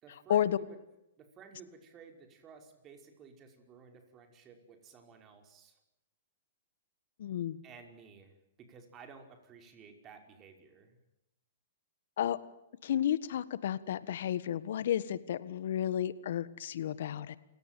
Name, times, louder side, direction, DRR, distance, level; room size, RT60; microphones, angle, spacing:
voice 1, 0.0-0.8 1.2-5.8 7.6-11.0, right 5 dB, 30° right, 5 dB, 5.3 m, -55 dB
voice 2, 7.2-7.6 12.2-12.4 12.8-17.4, left 10 dB, 65° left, 16 dB, 1.5 m, -32 dB
29.0 x 17.5 x 9.2 m, 0.88 s
hypercardioid pair, 120°, 0 cm